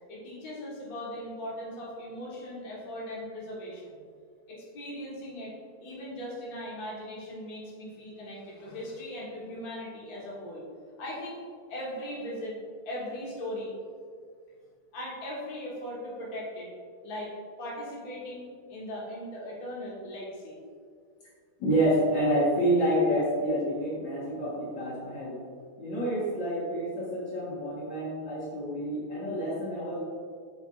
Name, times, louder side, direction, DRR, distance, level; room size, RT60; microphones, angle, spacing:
voice 1, 0.1-4.0 4.5-5.5 5.8-10.6 11.0-11.4 11.7-12.6 12.8-13.7 14.9-16.7 17.0-17.3 17.6-20.6, left 1 dB, 45° left, -5 dB, 1.9 m, -39 dB
voice 2, 21.6-25.4 25.8-30.0, right 1 dB, 65° left, -7 dB, 1.9 m, -28 dB
7.9 x 6.2 x 2.4 m, 2.1 s
omnidirectional pair, 2.3 m